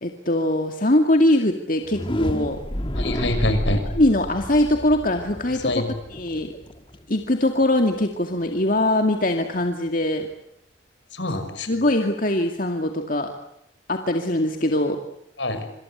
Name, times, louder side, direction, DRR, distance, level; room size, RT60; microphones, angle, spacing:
voice 1, 0.0-2.6 4.0-5.8 6.1-6.5 7.1-10.3 11.7-13.3 13.9-15.0, left 1 dB, 45° left, 4 dB, 2.3 m, -22 dB
sound 1, 1.8-7.7, equal, 25° left, 2.1 m, -30 dB
voice 2, 2.9-3.8 5.6-5.9 11.1-11.7 15.4-15.7, left 1 dB, 70° left, 9 dB, 6.2 m, -25 dB
27.5 x 27.0 x 8.1 m, 0.78 s
head